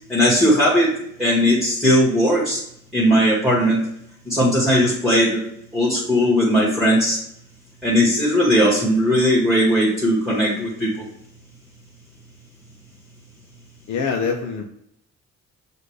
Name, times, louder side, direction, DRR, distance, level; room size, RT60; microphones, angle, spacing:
voice 1, 0.1-2.6 2.9-3.8 4.2-5.4 5.7-7.2 7.8-10.9, equal, ahead, -7 dB, 1.7 m, -18 dB
voice 2, 13.9-14.6, left 5 dB, 70° left, 1 dB, 0.7 m, -24 dB
6.4 x 2.5 x 3.2 m, 0.73 s
cardioid pair, 90°, 30 cm